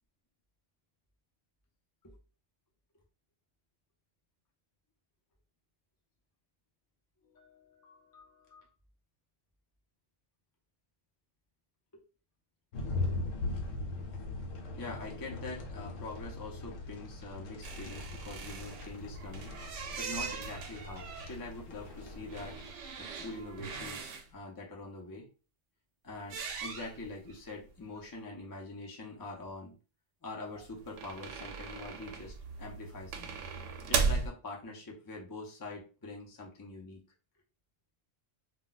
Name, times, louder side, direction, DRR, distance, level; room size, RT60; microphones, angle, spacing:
voice 1, 7.2-8.7 11.9-12.0 14.8-19.5 20.0-22.6 23.0-25.3 26.0-29.8 30.2-33.4 33.9-37.0, left 2 dB, 25° left, -1 dB, 0.4 m, -44 dB
sound 1, 12.7-22.7, left 2 dB, 80° left, 1.0 m, -40 dB
sound 2, 17.6-24.3 26.2-27.3 27.7-27.8 28.0-28.1 30.5-34.3, right 5 dB, 75° right, 0.9 m, -38 dB
2.2 x 2.2 x 3.9 m, 0.34 s
omnidirectional pair, 1.3 m